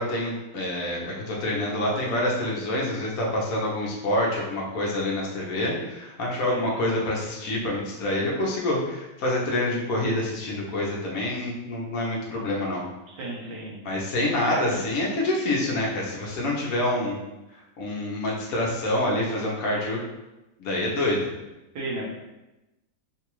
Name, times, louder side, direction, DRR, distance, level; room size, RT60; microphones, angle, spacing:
voice 1, 0.0-12.8 13.8-17.2 17.8-20.0 20.6-21.3, left 1 dB, 60° left, -3 dB, 1.1 m, -27 dB
voice 2, 6.5-6.8 13.1-13.8 14.2-14.8 21.7-22.1, right 2 dB, 70° right, -4 dB, 1.6 m, -34 dB
4.0 x 2.4 x 3.0 m, 0.99 s
omnidirectional pair, 1.9 m